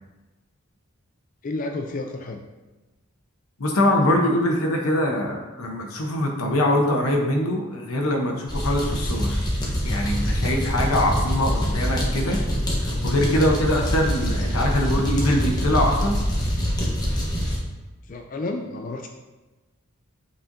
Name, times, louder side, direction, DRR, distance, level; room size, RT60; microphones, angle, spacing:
voice 1, 1.4-2.4 18.1-19.1, left 2 dB, 40° left, 4 dB, 0.4 m, -31 dB
voice 2, 3.6-9.4 9.8-12.4 12.7-16.2, left 1 dB, 90° left, 0 dB, 0.9 m, -23 dB
Coffee Napoletana, 8.5-17.6, equal, 20° left, 1.0 m, -24 dB
8.4 x 4.2 x 2.6 m, 1.2 s
head